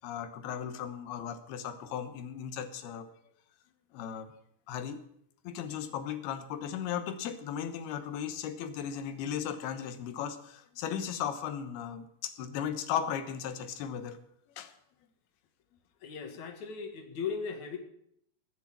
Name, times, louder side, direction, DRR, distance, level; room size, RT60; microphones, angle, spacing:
voice 1, 0.0-3.1 3.9-4.3 4.7-5.0 5.4-14.2 14.6-14.7, left 8 dB, 75° left, 10 dB, 3.1 m, -36 dB
voice 2, 16.0-17.8, left 6 dB, 55° left, 5 dB, 2.7 m, -37 dB
19.5 x 6.7 x 8.6 m, 0.70 s
omnidirectional pair, 4.7 m